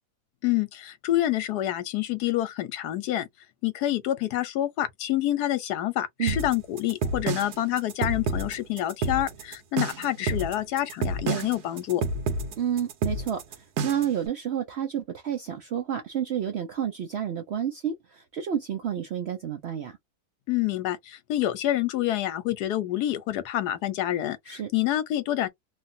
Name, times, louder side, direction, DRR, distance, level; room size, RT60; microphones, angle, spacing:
voice 1, 0.4-3.3 3.6-12.0 20.5-25.5, left 13 dB, 85° left, 1.2 m, -27 dB
sound 1, 6.3-14.2, right 3 dB, 80° right, 1.3 m, -29 dB
voice 2, 12.6-13.4 13.8-20.0 24.5-24.7, right 9 dB, 65° right, 0.6 m, -30 dB
3.1 x 2.4 x 2.6 m
omnidirectional pair, 1.7 m